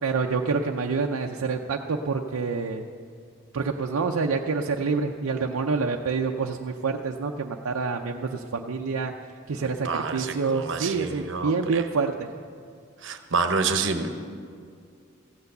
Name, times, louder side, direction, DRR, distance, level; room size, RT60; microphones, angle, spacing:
voice 1, 0.0-2.8 3.5-9.1 9.5-12.3, right 4 dB, 85° right, 1 dB, 0.5 m, -27 dB
voice 2, 9.6-11.8 13.0-14.1, right 4 dB, 60° right, 7 dB, 0.9 m, -28 dB
15.0 x 8.2 x 6.6 m, 2.2 s
head